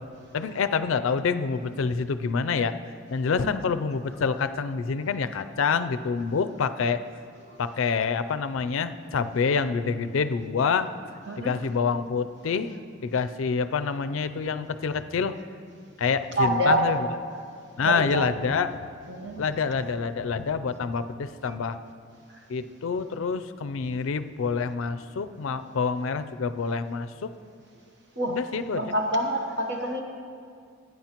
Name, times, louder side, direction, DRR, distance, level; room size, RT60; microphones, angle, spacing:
voice 1, 0.3-2.7 3.1-7.0 7.6-10.9 11.4-12.7 13.0-15.3 16.0-17.1 17.8-18.8 19.4-21.8 22.5-27.3 28.3-28.8, left 5 dB, 80° left, 11 dB, 0.4 m, -27 dB
voice 2, 16.4-16.9 17.8-18.2 19.1-19.4 28.2-28.4 28.7-30.0, right 1 dB, 55° right, 1 dB, 1.0 m, -26 dB
17.5 x 9.3 x 3.0 m, 2.3 s
head